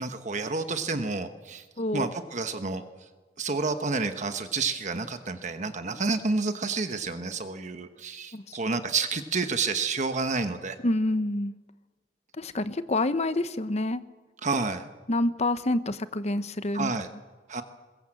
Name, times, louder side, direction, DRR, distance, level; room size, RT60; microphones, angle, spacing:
voice 1, 0.0-1.6 1.9-2.8 3.4-10.8 14.4-14.9 16.7-17.1 17.5-17.6, right 4 dB, 45° right, 8 dB, 1.1 m, -29 dB
voice 2, 10.8-11.5 12.4-14.0 15.1-16.9, left 2 dB, 40° left, 12 dB, 1.0 m, -27 dB
22.0 x 21.5 x 7.7 m, 1.3 s
head